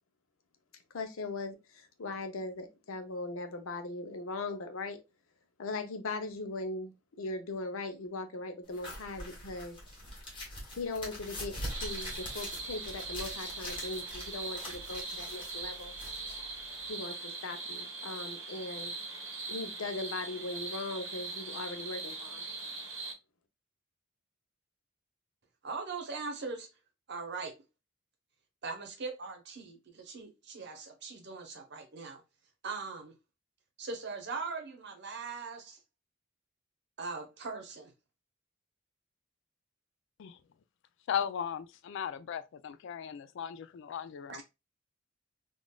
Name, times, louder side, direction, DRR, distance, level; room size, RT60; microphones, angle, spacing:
voice 1, 0.9-5.0 5.6-9.8 10.7-15.9 16.9-18.9 19.5-22.4, left 3 dB, 90° left, 0.7 m, -39 dB
sound 1, 8.7-16.9, left 1 dB, 25° left, 1.3 m, -43 dB
sound 2, 11.7-23.1, right 3 dB, 85° right, 1.1 m, -41 dB
voice 2, 25.6-26.7 27.1-27.5 28.6-32.2 32.6-33.1 33.8-35.8 37.0-37.9 44.3-44.4, right 4 dB, 55° right, 0.9 m, -40 dB
voice 3, 41.1-44.4, left 8 dB, 65° left, 0.3 m, -37 dB
3.7 x 2.4 x 2.2 m
head